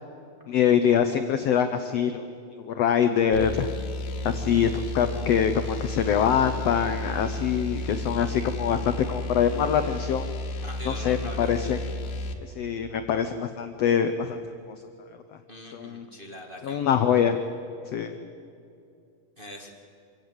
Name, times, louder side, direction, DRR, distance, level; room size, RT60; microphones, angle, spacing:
voice 1, 0.5-2.3 2.7-3.7 4.2-10.3 10.8-11.8 12.4-14.4 14.7-14.8 15.7-16.0 16.6-17.4 17.9-18.1, left 8 dB, 85° left, 9 dB, 1.4 m, -24 dB
sound 1, 3.3-12.4, left 2 dB, 65° left, 2.7 m, -33 dB
voice 2, 10.6-11.7 15.5-16.9 19.4-19.7, equal, 25° right, 0 dB, 1.2 m, -42 dB
26.0 x 16.5 x 8.1 m, 2.5 s
omnidirectional pair, 4.0 m